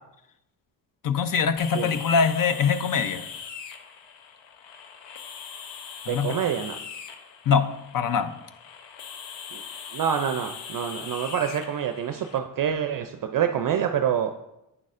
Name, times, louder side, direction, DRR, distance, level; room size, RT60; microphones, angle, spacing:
voice 1, 1.0-3.2 6.1-6.4 7.5-8.3, left 6 dB, 50° left, 11 dB, 0.6 m, -23 dB
sound 1, 1.6-12.4, left 6 dB, 80° left, 0.7 m, -41 dB
voice 2, 6.1-6.8 9.5-9.6 9.9-14.3, right 8 dB, 50° right, 7 dB, 0.5 m, -26 dB
8.7 x 6.3 x 2.5 m, 0.89 s
cardioid pair, 75°, 44 cm